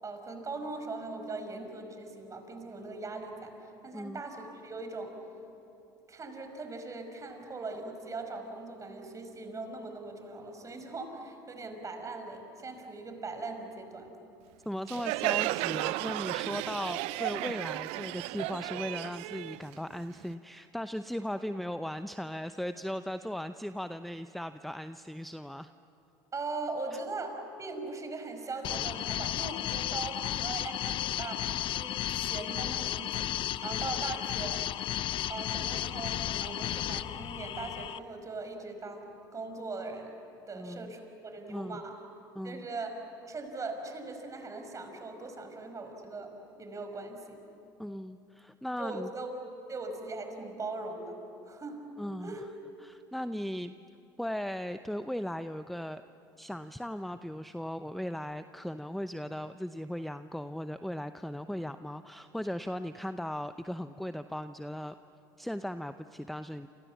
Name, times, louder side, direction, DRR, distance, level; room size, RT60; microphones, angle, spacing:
voice 1, 0.0-5.2 6.1-14.1 26.3-33.3 33.6-34.7 35.3-40.1 40.5-41.9 42.4-43.0 43.3-46.3 46.6-47.4 48.8-49.3 49.7-51.2 51.5-51.8 52.2-52.4, right 3 dB, 30° right, 5 dB, 5.2 m, -40 dB
voice 2, 14.7-25.7 26.9-27.0 40.5-40.9 41.5-41.8 42.4-42.7 47.8-49.1 52.0-52.4 52.8-53.7 54.2-56.0 56.4-64.9 65.4-66.7, equal, ahead, 11 dB, 0.7 m, -37 dB
Crowd, 14.9-20.3, right 19 dB, 65° right, 0.6 m, -34 dB
sound 1, 28.6-38.0, left 12 dB, 50° left, 0.7 m, -33 dB
28.5 x 28.0 x 7.3 m, 2.9 s
hypercardioid pair, 75°, 11 cm